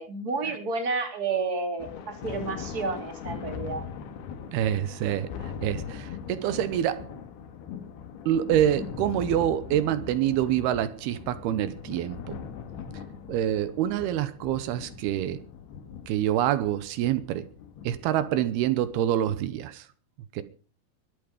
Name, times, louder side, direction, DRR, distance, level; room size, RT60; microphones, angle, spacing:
voice 1, 0.0-3.8, right 4 dB, 25° right, 2.7 m, -30 dB
Thunder, 1.8-19.5, left 7 dB, 80° left, 3.6 m, -40 dB
voice 2, 4.5-7.1 8.3-12.4 13.3-15.4 16.1-17.4 17.8-19.9 20.3-20.4, right 11 dB, 85° right, 2.9 m, -26 dB
23.0 x 8.9 x 5.2 m
omnidirectional pair, 4.5 m